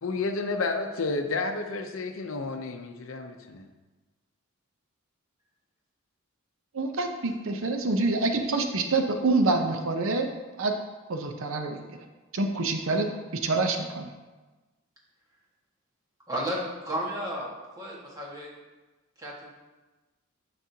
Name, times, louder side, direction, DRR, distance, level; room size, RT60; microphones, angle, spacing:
voice 1, 0.0-3.7, left 3 dB, 65° left, 6 dB, 0.6 m, -31 dB
voice 2, 6.7-10.3 10.6-10.7 11.1-12.0 12.3-13.1 13.4-14.1, right 3 dB, 70° right, 5 dB, 0.7 m, -26 dB
voice 3, 16.3-17.5 17.8-18.5 19.2-19.5, equal, 15° right, -5 dB, 1.5 m, -33 dB
9.7 x 6.0 x 2.8 m, 1.2 s
head